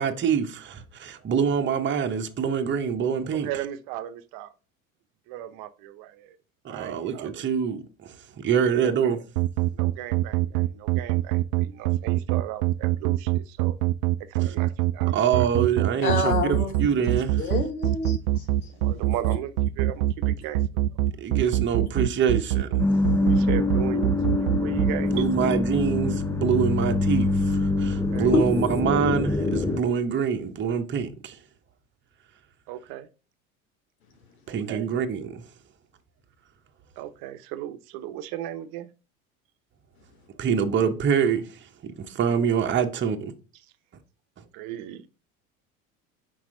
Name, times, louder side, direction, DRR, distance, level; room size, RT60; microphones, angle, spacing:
voice 1, 0.0-3.5 6.6-9.2 15.1-17.5 21.2-22.7 25.1-31.4 34.5-35.4 40.4-41.5 42.0-43.2, right 7 dB, 25° right, 1.0 m, -25 dB
voice 2, 3.4-4.5 5.3-6.4 6.7-7.5 8.6-9.2 9.7-13.8 14.3-15.4 18.7-20.6 23.2-25.5 27.9-28.3 32.7-33.1 34.5-34.9 37.0-38.9 44.5-45.0, right 12 dB, 50° right, 0.8 m, -37 dB
sound 1, 9.4-24.9, right 15 dB, 75° right, 0.5 m, -23 dB
voice 3, 16.0-17.0 17.4-18.4 28.3-28.4, left 3 dB, 80° left, 1.1 m, -27 dB
sound 2, 22.8-29.8, left 2 dB, 5° left, 0.5 m, -24 dB
6.0 x 4.7 x 3.8 m
hypercardioid pair, 80°, 42 cm